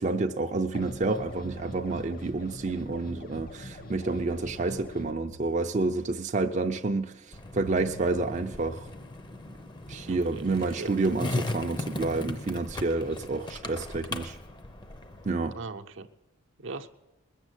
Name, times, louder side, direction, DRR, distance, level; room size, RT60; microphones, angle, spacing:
voice 1, 0.0-7.1 7.5-8.9 9.9-14.4 15.2-15.6, right 3 dB, 35° right, 0.5 m, -29 dB
sound 1, 0.7-5.1, left 1 dB, 45° left, 1.0 m, -44 dB
sound 2, 3.4-12.1 12.8-15.2, right 2 dB, 90° left, 1.8 m, -54 dB
Skateboard, 7.3-15.3, left 2 dB, 20° left, 0.7 m, -37 dB
voice 2, 10.1-11.0 15.5-16.1 16.6-16.9, right 3 dB, 70° right, 0.7 m, -40 dB
20.5 x 7.3 x 8.1 m
head